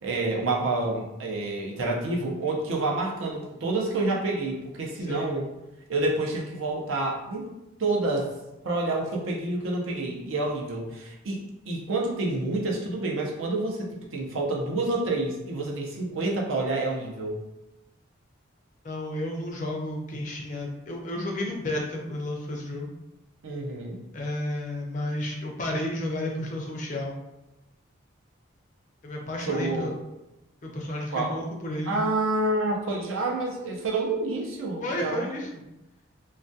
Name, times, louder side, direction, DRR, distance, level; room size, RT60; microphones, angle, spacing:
voice 1, 0.0-5.5 5.9-7.5 7.8-8.3 8.6-17.4 23.4-24.0 29.4-29.9 31.1-31.4 31.9-35.3, right 2 dB, 75° right, -1 dB, 0.5 m, -28 dB
voice 2, 5.1-5.4 18.8-22.9 24.1-27.2 29.0-29.9 30.6-32.0 34.8-35.5, left 1 dB, 40° left, 0 dB, 0.4 m, -32 dB
2.3 x 2.2 x 2.6 m, 0.94 s
head